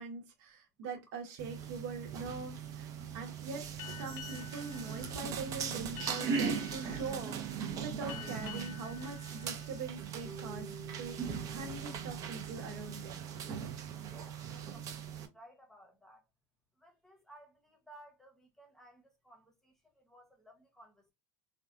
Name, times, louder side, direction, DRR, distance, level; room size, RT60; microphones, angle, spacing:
voice 1, 0.0-2.9 3.1-3.7 3.9-13.3, right 4 dB, 65° right, 1.0 m, -43 dB
sound 1, 1.4-15.3, right 6 dB, 35° right, 0.5 m, -39 dB
Boat Water vehicle, 3.8-10.9, left 12 dB, 50° left, 0.5 m, -50 dB
Bass guitar, 10.2-14.5, right 2 dB, 20° right, 1.0 m, -53 dB
voice 2, 14.1-16.2 16.8-21.1, right 1 dB, 5° left, 0.9 m, -59 dB
3.3 x 2.3 x 2.4 m
supercardioid pair, 130°, 10 cm